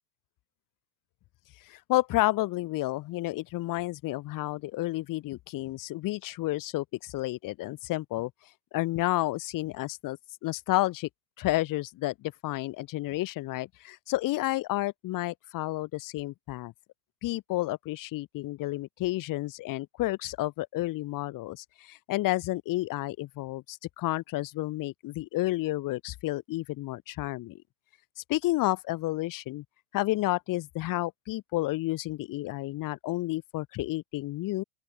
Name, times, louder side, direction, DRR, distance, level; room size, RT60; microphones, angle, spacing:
voice 1, 1.7-8.3 8.7-10.2 10.4-11.1 11.4-16.7 17.2-27.6 28.2-29.6 29.9-34.6, left 18 dB, 40° left, 2.9 m, -31 dB
open air
supercardioid pair, 120°, 48 cm